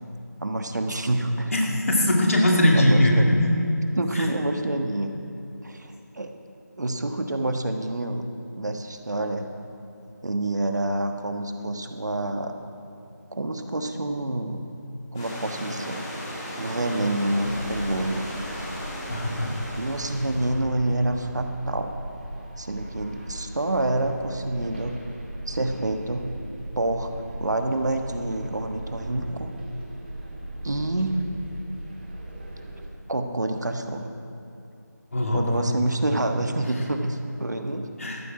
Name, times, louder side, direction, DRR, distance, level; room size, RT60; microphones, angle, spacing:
voice 1, 0.4-1.5 2.7-3.4 3.9-5.1 5.6-6.3 6.8-8.2 8.5-9.5 10.2-12.5 13.3-14.6 15.1-16.1 16.6-18.3 19.8-22.0 22.6-25.0 25.5-26.3 26.7-27.1 27.4-29.5 30.6-31.2 33.1-34.1 35.3-37.9, right 1 dB, 70° right, 5 dB, 1.3 m, -27 dB
voice 2, 1.5-3.5 4.1-4.2 19.1-19.5 35.1-35.6 38.0-38.2, left 1 dB, 50° left, -1 dB, 2.4 m, -20 dB
Stream / Liquid, 15.1-20.5, equal, 10° left, 1.5 m, -36 dB
sound 1, 17.4-32.9, right 1 dB, 30° right, 1.9 m, -38 dB
14.0 x 12.0 x 4.8 m, 2.9 s
figure-of-eight pair, 175°, 10 cm